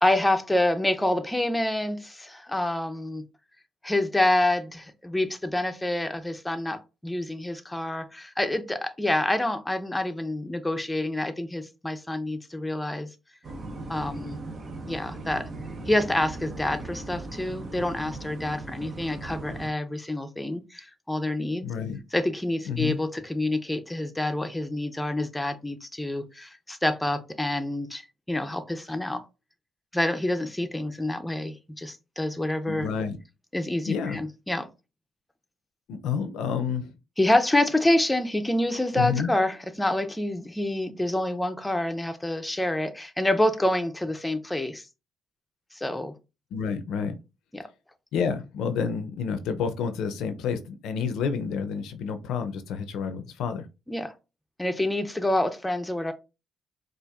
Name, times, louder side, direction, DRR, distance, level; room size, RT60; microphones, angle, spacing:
voice 1, 0.0-3.2 3.8-13.1 13.9-14.4 14.9-15.5 15.9-21.7 22.1-29.2 29.9-32.9 33.5-34.7 37.2-44.8 45.7-46.1 47.5-47.7 53.9-54.1 54.6-56.1, left 1 dB, 10° left, 0.6 m, -27 dB
sound 1, 13.4-19.7, right 2 dB, 50° right, 0.8 m, -38 dB
voice 2, 21.6-22.0 22.7-23.0 32.7-33.2 33.8-34.2 35.9-36.9 38.9-39.3 46.5-47.2 48.1-53.7, left 6 dB, 85° left, 0.5 m, -29 dB
4.4 x 2.5 x 2.5 m
cardioid pair, 90°, 0 cm